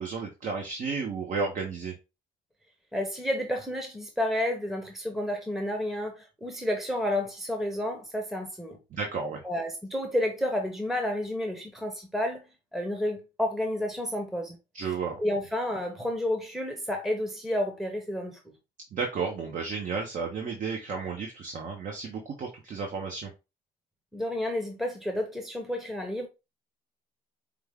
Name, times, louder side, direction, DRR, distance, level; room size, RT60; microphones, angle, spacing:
voice 1, 0.0-1.9 8.9-9.4 14.7-15.2 18.9-23.3, right 5 dB, 50° right, 1.0 m, -32 dB
voice 2, 2.9-8.8 9.4-12.4 12.7-14.6 15.2-18.4 24.1-26.3, left 1 dB, ahead, 0.9 m, -30 dB
5.1 x 2.4 x 3.5 m
cardioid pair, 110°, 17 cm